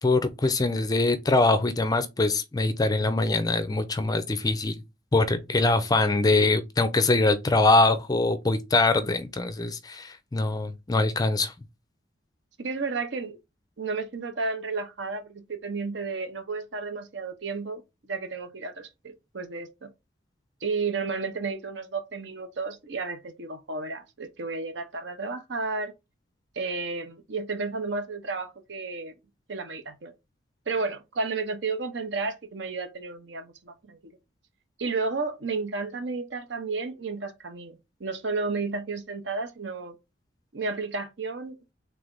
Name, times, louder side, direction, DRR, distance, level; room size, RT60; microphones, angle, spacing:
voice 1, 0.0-4.8 5.1-11.5, left 2 dB, 20° left, 0.4 m, -23 dB
voice 2, 12.6-13.4 13.8-17.8 18.1-19.9 20.6-25.9 26.5-29.1 29.5-30.1 30.7-34.1 34.8-39.9 40.5-41.5, right 4 dB, 65° right, 0.8 m, -32 dB
3.4 x 3.2 x 3.8 m
head